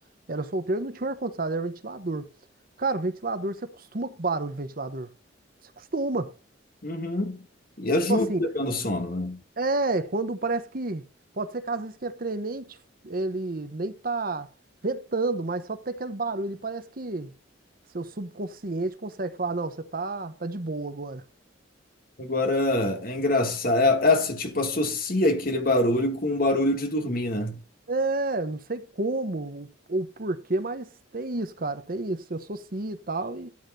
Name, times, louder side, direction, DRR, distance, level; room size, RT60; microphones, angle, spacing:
voice 1, 0.3-2.2 2.8-5.1 5.8-6.3 8.1-8.4 9.6-11.0 11.4-12.8 13.0-14.5 14.8-17.3 17.9-21.2 27.9-33.5, right 2 dB, 50° right, 1.0 m, -30 dB
voice 2, 6.8-7.4 7.8-9.4 22.2-27.6, left 2 dB, 50° left, 2.3 m, -24 dB
12.5 x 8.8 x 2.7 m
head